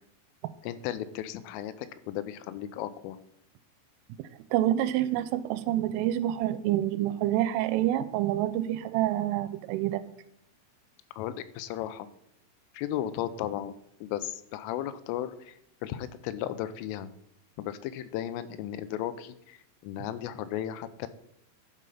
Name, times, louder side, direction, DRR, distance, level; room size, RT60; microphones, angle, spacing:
voice 1, 0.6-3.2 11.2-12.1 12.7-13.7 14.0-15.6 15.8-17.1 17.6-19.6 19.8-21.1, left 11 dB, 90° left, 13 dB, 3.2 m, -35 dB
voice 2, 4.5-10.0, right 13 dB, 85° right, 13 dB, 3.1 m, -27 dB
11.5 x 5.4 x 5.6 m, 0.77 s
omnidirectional pair, 5.7 m